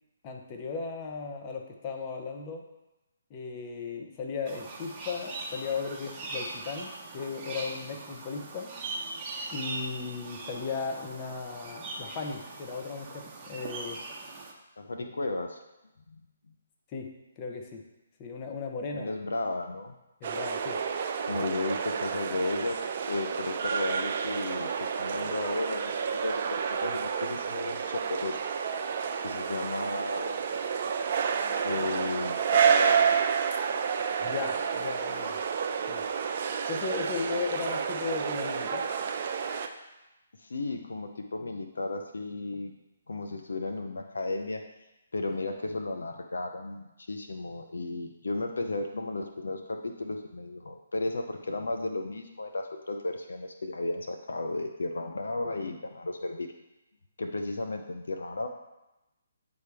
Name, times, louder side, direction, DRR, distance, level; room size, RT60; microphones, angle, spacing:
voice 1, 0.2-2.6 3.3-8.7 9.5-14.0 15.1-15.2 16.9-17.1 17.4-17.8 18.2-19.2 20.2-20.8 34.2-35.4 35.9-36.0 36.7-38.9, left 4 dB, 30° left, 2 dB, 0.8 m, -36 dB
sound 1, 4.5-14.5, right 2 dB, 20° right, 1.0 m, -40 dB
voice 2, 14.8-15.6 16.1-16.2 16.5-16.6 18.9-19.9 21.3-22.8 23.1-28.4 29.2-30.4 31.4-33.2 40.4-42.7 43.1-44.6 45.1-56.5 57.2-58.5, left 2 dB, 75° left, 5 dB, 0.6 m, -34 dB
sound 2, 20.2-39.7, right 7 dB, 45° right, 0.5 m, -30 dB
9.2 x 3.5 x 3.4 m, 0.98 s
figure-of-eight pair, 140°, 0 cm